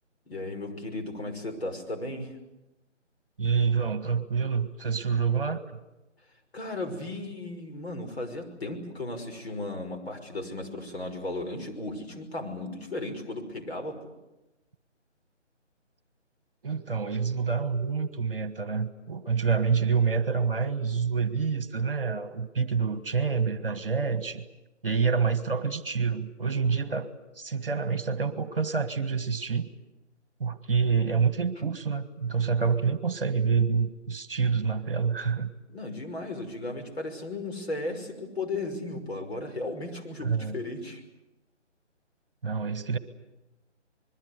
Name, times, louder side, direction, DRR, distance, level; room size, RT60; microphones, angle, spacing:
voice 1, 0.3-2.3 6.5-14.0 35.7-41.0, left 2 dB, 55° left, 4 dB, 5.8 m, -35 dB
voice 2, 3.4-5.6 16.6-24.5 24.8-27.1 27.4-29.7 30.4-35.5 40.2-40.6 42.4-43.0, right 5 dB, 50° right, 12 dB, 1.7 m, -27 dB
27.0 x 21.5 x 8.1 m, 1.0 s
figure-of-eight pair, 170°, 37 cm